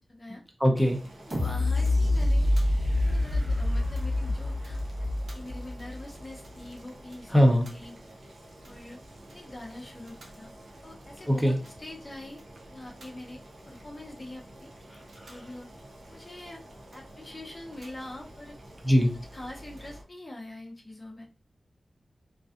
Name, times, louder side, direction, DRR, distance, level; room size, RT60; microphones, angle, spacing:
voice 1, 0.1-0.4 1.2-2.5 3.0-4.8 5.3-7.4 7.7-7.9 8.6-9.0 9.3-10.5 10.8-12.4 12.7-14.7 15.2-15.7 16.1-16.6 16.9-18.6 19.3-21.3, left 1 dB, 35° left, -1 dB, 0.6 m, -44 dB
voice 2, 0.6-1.0 7.3-7.7 11.3-11.6 14.9-15.4 18.8-19.1, equal, 5° right, 1 dB, 0.6 m, -22 dB
Boiling, 0.8-20.0, right 1 dB, 80° right, 0.6 m, -49 dB
sound 1, 1.3-6.2 6.6-6.7, left 1 dB, 50° right, 0.9 m, -26 dB
2.5 x 2.2 x 2.4 m, 0.34 s
wide cardioid pair, 65°, 0 cm